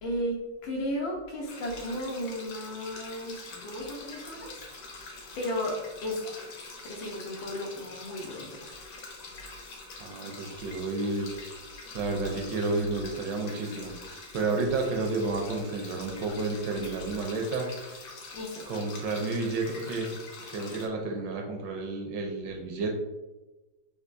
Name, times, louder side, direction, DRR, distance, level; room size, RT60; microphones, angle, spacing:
voice 1, 0.0-4.6 5.3-6.3 6.8-8.9 18.3-18.7, equal, 80° left, -1 dB, 1.5 m, -34 dB
sound 1, 1.5-20.9, left 3 dB, 65° left, 1.1 m, -45 dB
voice 2, 10.0-11.3 11.9-17.7 18.7-20.2 20.5-22.9, right 3 dB, 75° right, 2 dB, 1.1 m, -31 dB
4.5 x 2.2 x 2.5 m, 1.1 s
omnidirectional pair, 2.1 m